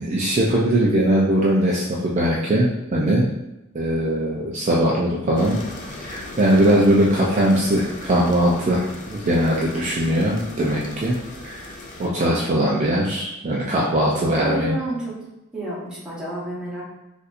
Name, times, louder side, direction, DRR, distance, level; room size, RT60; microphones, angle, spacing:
voice 1, 0.0-3.3 3.7-11.2 11.4-11.7 12.0-14.8, right 1 dB, 35° right, -4 dB, 0.4 m, -20 dB
sound 1, 5.3-12.1, left 2 dB, 40° left, 0.5 m, -38 dB
voice 2, 14.4-15.2 15.5-16.8, right 1 dB, 5° right, -8 dB, 1.0 m, -30 dB
4.1 x 2.6 x 2.5 m, 0.94 s
head